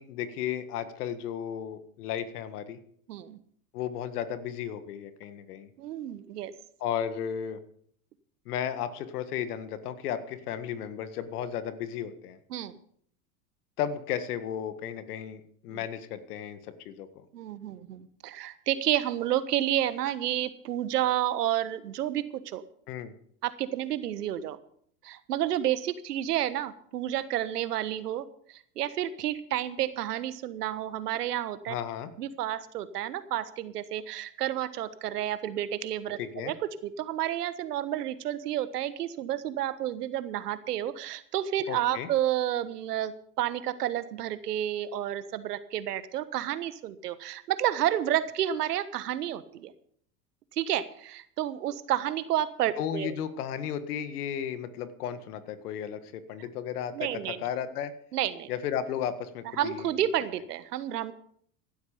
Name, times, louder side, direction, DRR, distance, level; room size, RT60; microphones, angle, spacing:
voice 1, 0.0-2.8 3.7-5.7 6.8-7.6 8.5-12.4 13.8-17.3 22.9-23.2 31.7-32.1 36.2-36.5 41.7-42.1 52.8-57.9 58.5-59.9, left 9 dB, 70° left, 12 dB, 1.8 m, -34 dB
voice 2, 3.1-3.4 5.8-6.5 12.5-12.8 15.7-15.8 17.3-22.6 23.4-24.6 25.0-31.7 32.2-36.2 36.5-36.6 36.8-49.7 50.5-53.1 56.9-57.4 58.1-58.5 59.6-61.1, right 12 dB, 80° right, 14 dB, 1.3 m, -30 dB
16.0 x 12.0 x 5.1 m, 0.62 s
hypercardioid pair, 85°, 47 cm